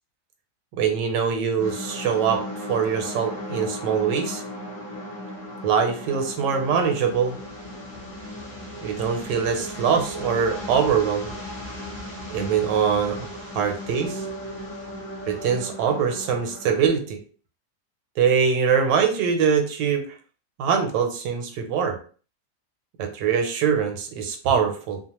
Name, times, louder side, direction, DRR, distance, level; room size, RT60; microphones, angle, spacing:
voice 1, 0.7-4.4 5.6-7.4 8.8-11.3 12.3-13.3 13.5-14.2 15.3-17.2 18.2-20.0 20.6-22.0 23.0-25.0, right 7 dB, 80° right, 5 dB, 1.2 m, -23 dB
sound 1, 1.6-16.9, left 1 dB, 20° left, 0.4 m, -36 dB
2.9 x 2.0 x 2.9 m, 0.41 s
omnidirectional pair, 1.9 m